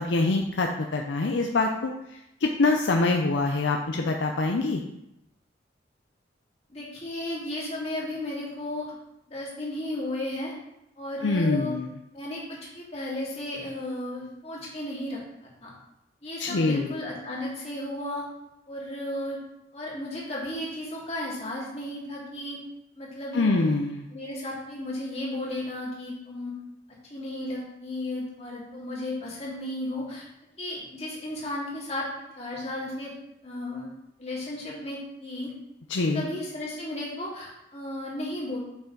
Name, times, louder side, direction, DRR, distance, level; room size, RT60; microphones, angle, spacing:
voice 1, 0.0-1.9 2.4-4.8 11.2-11.9 16.4-17.0 23.3-24.0 35.9-36.3, left 3 dB, 70° left, 3 dB, 0.6 m, -24 dB
voice 2, 6.7-8.9 9.3-10.5 11.0-11.7 12.1-15.7 16.2-18.2 18.7-19.4 19.7-22.6 22.9-23.5 24.1-26.5 27.1-30.2 30.6-32.1 32.4-33.1 33.4-33.9 34.2-35.5 36.0-38.6, left 1 dB, 35° left, -5 dB, 2.5 m, -34 dB
6.9 x 5.7 x 3.9 m, 0.86 s
head